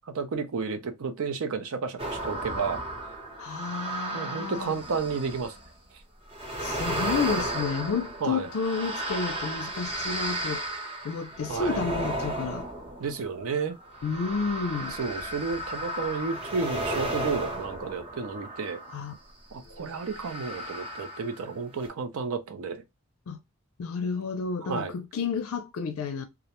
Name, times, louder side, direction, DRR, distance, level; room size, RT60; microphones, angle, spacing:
voice 1, 0.1-2.8 4.1-5.5 8.2-8.5 11.5-11.8 13.0-13.8 15.0-18.8 19.5-22.8 24.7-24.9, right 5 dB, 75° right, 0.5 m, -32 dB
sound 1, 2.0-5.7 6.3-19.1 19.9-21.5 21.8-21.9, right 1 dB, 25° right, 0.7 m, -34 dB
voice 2, 3.4-4.8 6.6-10.6 11.0-12.7 14.0-15.0 18.9-19.1 19.6-19.9 23.3-23.4 23.8-26.2, left 5 dB, 70° left, 0.4 m, -31 dB
2.4 x 2.0 x 2.9 m
head